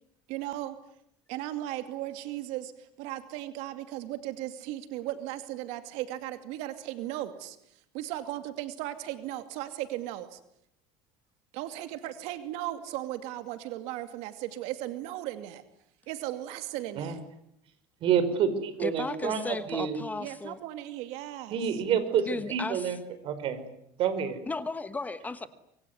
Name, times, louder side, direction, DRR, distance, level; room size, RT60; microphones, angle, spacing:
voice 1, 0.3-0.8 1.3-10.4 11.5-15.6 16.1-17.2 20.2-21.6, right 14 dB, 75° right, 2.5 m, -36 dB
voice 2, 18.0-20.0 21.5-23.0 23.2-23.6 24.0-24.4, right 7 dB, 50° right, 5.1 m, -28 dB
voice 3, 18.8-20.6 22.3-23.0 24.5-25.5, left 3 dB, 15° left, 1.2 m, -35 dB
25.5 x 23.5 x 9.6 m
cardioid pair, 140°, 11 cm